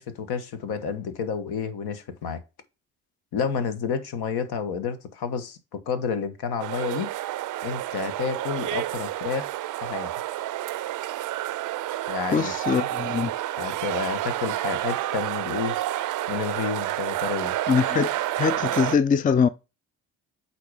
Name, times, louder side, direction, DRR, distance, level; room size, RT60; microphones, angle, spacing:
voice 1, 0.0-2.4 3.3-7.1 7.6-9.5 9.8-10.1 12.1-12.8 13.6-15.7 16.3-17.6, left 6 dB, 65° left, 1.3 m, -30 dB
sound 1, 6.6-19.0, right 14 dB, 50° right, 0.5 m, -29 dB
voice 2, 12.3-13.3 17.7-19.5, left 6 dB, 20° left, 0.4 m, -23 dB
8.4 x 2.8 x 4.8 m
hypercardioid pair, 55°, 42 cm